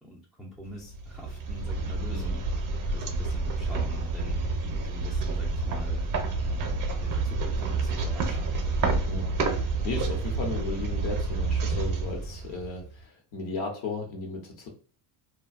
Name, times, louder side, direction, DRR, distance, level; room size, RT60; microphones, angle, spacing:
voice 1, 0.0-2.4 2.9-4.4 4.8-6.1 6.4-8.7, equal, ahead, -4 dB, 0.3 m, -44 dB
sound 1, 0.8-12.9, right 3 dB, 45° right, 0.6 m, -29 dB
voice 2, 2.1-2.4 9.1-14.7, left 3 dB, 70° left, 1 dB, 1.0 m, -35 dB
2.6 x 2.2 x 2.4 m, 0.41 s
cardioid pair, 130°, 49 cm